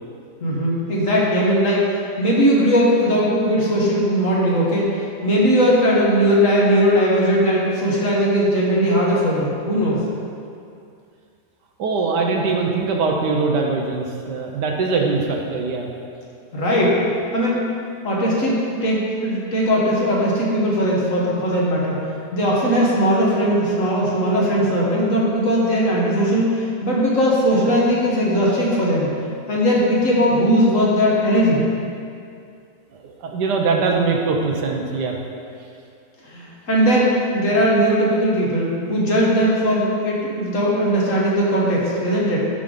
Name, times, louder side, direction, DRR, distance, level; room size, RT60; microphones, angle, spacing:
voice 1, 0.4-10.0 16.5-17.0 17.3-17.7 18.0-22.0 22.3-29.1 29.5-31.6 36.3-42.4, equal, 50° left, -5 dB, 1.7 m, -19 dB
voice 2, 11.8-15.9 33.0-35.2, right 4 dB, 75° right, 1 dB, 1.4 m, -22 dB
11.5 x 4.9 x 3.9 m, 2.4 s
omnidirectional pair, 1.8 m